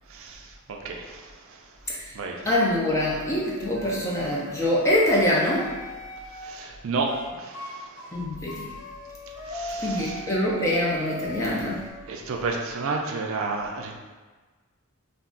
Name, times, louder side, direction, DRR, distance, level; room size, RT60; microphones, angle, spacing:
voice 1, 0.1-1.6 2.1-2.5 6.3-8.1 9.5-10.3 11.4-11.6 12.1-14.0, right 3 dB, 65° right, 1 dB, 0.4 m, -32 dB
voice 2, 2.4-5.7 8.1-8.7 9.8-11.8, left 1 dB, 15° left, -4 dB, 0.4 m, -24 dB
sound 1, 2.9-6.5 7.1-7.3 7.5-7.7 8.0-11.9, left 2 dB, 75° left, 0.8 m, -37 dB
2.3 x 2.2 x 3.7 m, 1.3 s
head